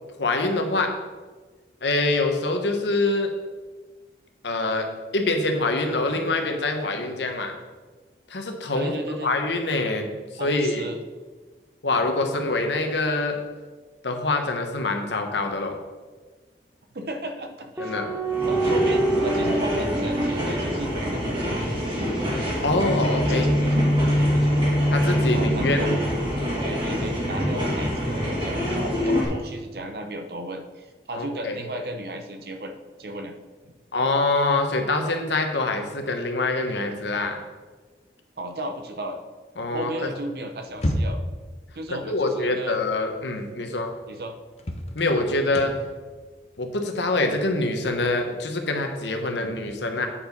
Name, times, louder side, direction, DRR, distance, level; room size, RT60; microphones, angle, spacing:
voice 1, 0.2-0.9 1.8-3.3 4.4-4.9 5.1-7.5 8.3-8.9 9.2-10.1 10.3-10.8 11.8-13.3 14.0-15.7 17.8-18.1 22.6-23.5 24.9-25.9 31.1-31.6 33.9-37.4 39.6-40.1 42.1-43.9 44.9-45.7 46.6-50.1, left 2 dB, 85° left, 5 dB, 1.1 m, -25 dB
voice 2, 8.7-9.3 10.4-11.0 16.9-18.0 18.5-22.0 23.3-24.6 25.3-26.0 26.6-33.3 33.6-33.8 38.4-39.2 39.7-41.2 41.7-42.8 43.6-44.4, right 1 dB, 60° right, 5 dB, 0.8 m, -35 dB
sound 1, 17.8-21.5 22.9-26.6 27.4-28.7, right 1 dB, 10° right, 0.7 m, -24 dB
sound 2, 18.3-29.2, equal, 30° right, 2.1 m, -27 dB
sound 3, 40.7-41.4 43.2-43.3 43.7-43.8 44.6-48.2, equal, 35° left, 0.8 m, -30 dB
8.7 x 4.9 x 5.3 m, 1.3 s
head